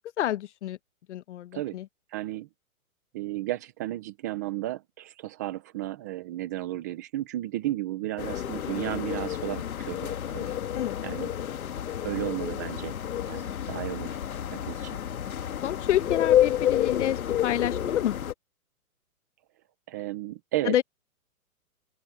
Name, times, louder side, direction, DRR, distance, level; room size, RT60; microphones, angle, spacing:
voice 1, 0.2-0.8 1.1-1.9 10.7-11.0 13.6-13.7 15.6-18.1 20.6-20.8, left 12 dB, 55° left, 1.0 m, -28 dB
voice 2, 2.1-2.5 3.1-10.5 11.0-11.3 12.0-12.9 13.3-14.2 14.5-15.0 19.9-20.7, right 15 dB, 15° right, 0.5 m, -33 dB
sound 1, 8.2-18.3, left 11 dB, 75° left, 2.1 m, -29 dB
open air
hypercardioid pair, 150°, 43 cm